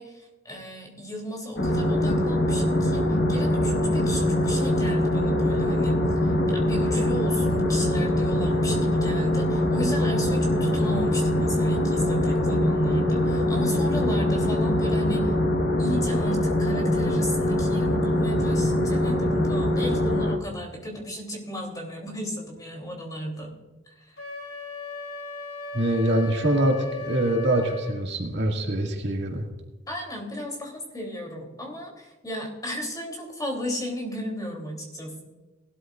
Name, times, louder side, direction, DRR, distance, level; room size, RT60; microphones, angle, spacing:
voice 1, 0.0-15.3 15.8-23.5 24.1-24.2 29.9-35.2, left 1 dB, 20° left, 1 dB, 3.1 m, -35 dB
sound 1, 1.6-20.4, left 1 dB, 55° left, 1.4 m, -23 dB
Wind instrument woodwind instrument, 24.2-28.0, left 1 dB, 80° left, 2.9 m, -37 dB
voice 2, 25.7-29.5, right 1 dB, 60° right, 1 dB, 2.0 m, -24 dB
19.0 x 13.0 x 2.5 m, 1.2 s
head